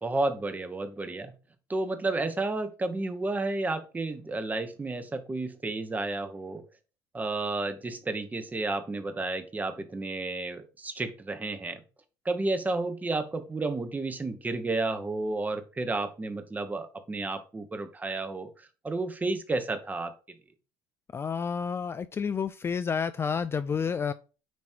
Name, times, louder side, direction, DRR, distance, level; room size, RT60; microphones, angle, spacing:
voice 1, 0.0-1.3 1.7-6.6 7.1-11.8 12.2-20.1, right 2 dB, 15° right, 1.2 m, -31 dB
voice 2, 21.1-24.1, left 6 dB, 25° left, 0.4 m, -30 dB
9.4 x 3.2 x 4.4 m
cardioid pair, 110°, 9 cm